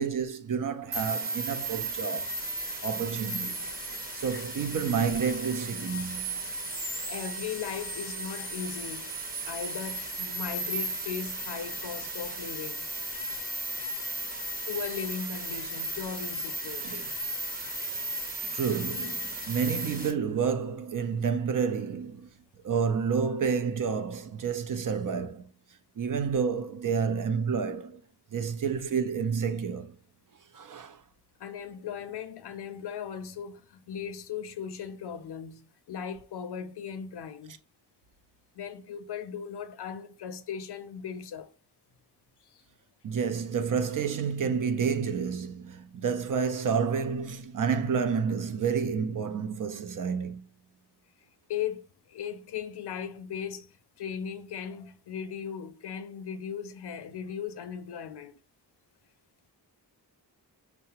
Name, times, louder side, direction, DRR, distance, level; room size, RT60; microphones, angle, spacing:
voice 1, 0.0-2.3 2.8-3.6 4.1-6.4 16.8-17.0 18.4-22.3 22.6-25.5 26.0-28.0 28.3-30.0 30.5-31.0 43.0-50.5, right 6 dB, 50° right, 0.4 m, -29 dB
sound 1, 0.9-20.1, right 1 dB, 20° right, 0.8 m, -35 dB
voice 2, 7.1-12.9 14.7-17.1 31.4-37.6 38.6-41.5 42.5-42.6 51.5-53.7 54.0-58.4, left 7 dB, 70° left, 0.5 m, -38 dB
5.6 x 2.0 x 2.8 m
wide cardioid pair, 115°, 42 cm